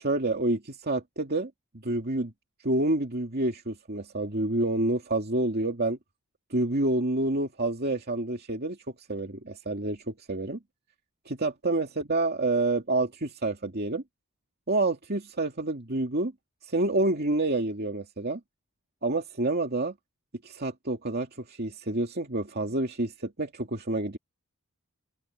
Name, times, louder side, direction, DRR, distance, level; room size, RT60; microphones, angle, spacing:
voice 1, 0.0-1.5 1.8-2.3 2.6-6.0 6.5-8.8 9.1-10.6 11.3-14.0 14.7-16.3 16.6-18.4 19.0-19.9 20.4-24.2, right 2 dB, 45° right, 2.5 m, -28 dB
open air
head